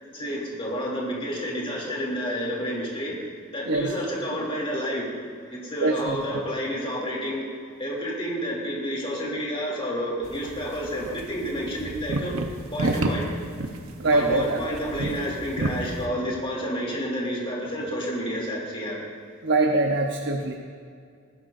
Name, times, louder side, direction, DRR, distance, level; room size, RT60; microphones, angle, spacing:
voice 1, 0.1-3.1 3.5-5.1 5.5-7.5 7.8-12.3 12.7-13.3 14.1-19.0, equal, 25° left, -3 dB, 2.8 m, -30 dB
voice 2, 5.8-6.2 14.0-14.6 19.4-20.5, right 2 dB, 60° right, 2 dB, 0.9 m, -23 dB
sound 1, 10.2-16.1, right 1 dB, 80° right, 1.1 m, -31 dB
19.5 x 15.5 x 2.6 m, 2.3 s
head